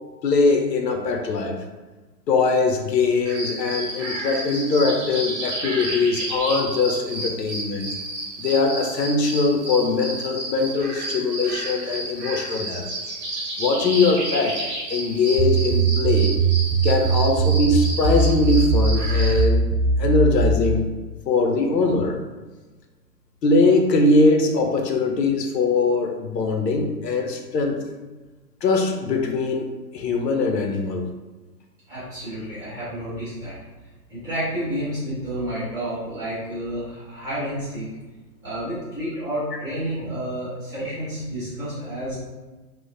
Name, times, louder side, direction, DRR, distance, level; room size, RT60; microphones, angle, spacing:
voice 1, 0.2-1.6 2.3-7.9 8.4-12.9 13.6-14.6 14.9-16.4 16.8-19.7 20.0-20.9 21.3-22.2 23.4-27.8 28.6-29.7 29.9-31.1, left 3 dB, 75° left, 3 dB, 0.6 m, -21 dB
sound 1, 3.2-19.4, right 1 dB, 45° right, 0.9 m, -31 dB
sound 2, 15.4-20.7, right 4 dB, 90° right, 1.0 m, -20 dB
voice 2, 31.9-33.6 34.1-37.9 38.4-42.2, right 1 dB, 5° right, -13 dB, 0.9 m, -30 dB
2.9 x 2.0 x 2.5 m, 1.3 s
hypercardioid pair, 135°, 50 cm